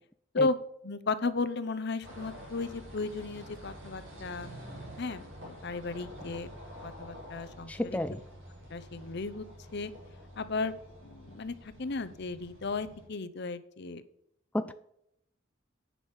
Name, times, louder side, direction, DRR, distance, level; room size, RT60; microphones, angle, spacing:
voice 1, 0.8-4.5 5.0-6.5 6.8-8.0 8.7-9.4 9.7-9.9 10.4-10.7 11.0-14.0, left 3 dB, 60° left, 12 dB, 0.8 m, -34 dB
sound 1, 2.0-13.1, equal, 75° right, 5.4 m, -48 dB
voice 2, 7.7-8.2 14.5-14.7, left 1 dB, 5° left, 11 dB, 0.3 m, -31 dB
10.0 x 6.1 x 7.3 m, 0.76 s
head